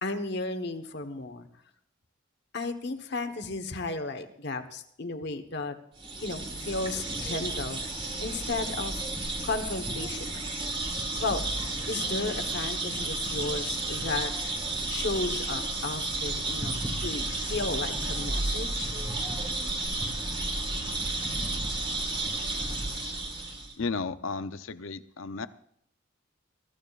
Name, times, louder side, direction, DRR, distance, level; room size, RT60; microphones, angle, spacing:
voice 1, 0.0-1.5 2.5-5.8 6.2-7.8 8.2-9.0 9.4-10.4 11.2-11.4 11.8-14.3 14.9-18.9, left 3 dB, 55° left, 8 dB, 1.2 m, -34 dB
sound 1, 6.0-23.7, right 2 dB, 25° right, 1.7 m, -32 dB
voice 2, 23.8-25.5, left 4 dB, 75° left, 12 dB, 0.7 m, -33 dB
21.5 x 14.5 x 2.5 m, 0.71 s
head